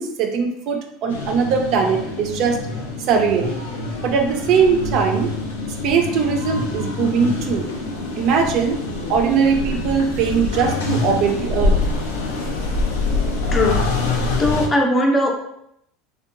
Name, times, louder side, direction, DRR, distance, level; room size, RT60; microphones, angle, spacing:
voice 1, 0.0-2.6 3.1-3.6 4.0-5.3 5.8-7.7 8.2-8.8 9.1-11.7, right 6 dB, 55° right, 3 dB, 0.4 m, -20 dB
sound 1, 1.1-14.7, left 3 dB, 90° left, 0.5 m, -25 dB
voice 2, 14.0-15.3, left 1 dB, 25° left, 1 dB, 0.5 m, -19 dB
2.7 x 2.2 x 2.5 m, 0.75 s
hypercardioid pair, 95°, 0 cm